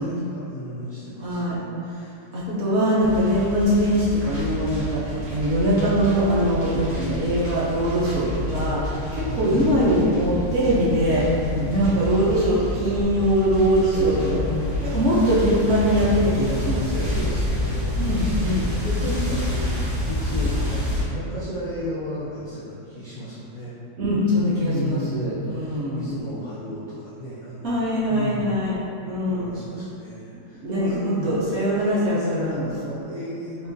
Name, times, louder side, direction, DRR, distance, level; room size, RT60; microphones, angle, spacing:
voice 1, 0.0-2.6 3.0-3.3 8.5-9.8 11.4-11.8 13.8-14.8 17.0-23.8 24.6-28.6 29.3-31.4 32.1-33.7, left 1 dB, 75° left, -9 dB, 0.4 m, -33 dB
voice 2, 1.2-1.6 2.3-8.8 9.1-11.4 11.6-14.2 14.8-17.1 18.0-18.7 24.0-26.1 27.6-28.8 29.1-29.5 30.3-32.7 33.6-33.7, equal, 65° right, -7 dB, 0.7 m, -22 dB
sound 1, 3.0-21.0, left 1 dB, 85° right, 1.5 m, -28 dB
3.6 x 2.5 x 2.6 m, 2.8 s
omnidirectional pair, 1.5 m